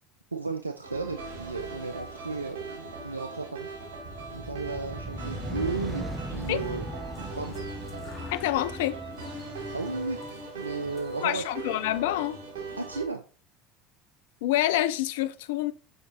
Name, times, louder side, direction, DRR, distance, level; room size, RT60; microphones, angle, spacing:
voice 1, 0.3-3.7 4.3-6.9 7.4-7.6 9.7-11.5 12.8-13.2, right 3 dB, 90° right, 0.3 m, -34 dB
sound 1, 0.8-13.1, right 3 dB, 70° right, 2.5 m, -40 dB
sound 2, 3.9-10.4, equal, 10° right, 0.7 m, -39 dB
sound 3, 6.2-11.6, left 3 dB, 20° left, 2.3 m, -55 dB
voice 2, 8.3-9.0 11.2-12.4 14.4-15.7, left 14 dB, 65° left, 0.4 m, -27 dB
6.5 x 5.7 x 2.8 m
figure-of-eight pair, 70°, 0 cm